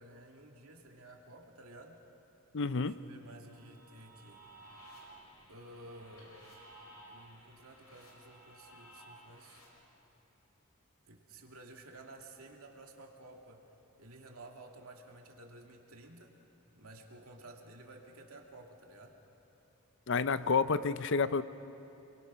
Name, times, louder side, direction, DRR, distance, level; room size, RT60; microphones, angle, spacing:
voice 1, 0.0-2.0 2.8-4.5 5.5-6.3 7.1-9.6 11.0-13.7 14.0-16.3 16.7-19.2, right 2 dB, 80° right, 1 dB, 2.5 m, -53 dB
voice 2, 2.5-2.9 20.1-21.4, left 4 dB, 55° left, 14 dB, 0.6 m, -29 dB
sound 1, 3.4-9.6, right 1 dB, 80° left, 5.7 m, -56 dB
27.5 x 22.5 x 6.2 m, 2.9 s
head